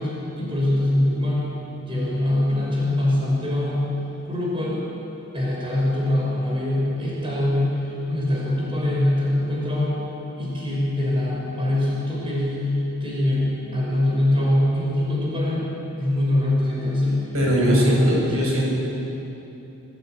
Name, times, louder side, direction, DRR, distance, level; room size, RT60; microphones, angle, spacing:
voice 1, 0.0-1.5 1.9-3.8 4.3-4.9 5.3-7.8 8.1-10.0 10.4-15.7 16.0-17.2 17.6-18.7, left 1 dB, 25° right, -4 dB, 5.6 m, -23 dB
voice 2, 17.3-18.7, equal, 90° right, -3 dB, 7.8 m, -20 dB
25.5 x 17.0 x 9.2 m, 3.0 s
head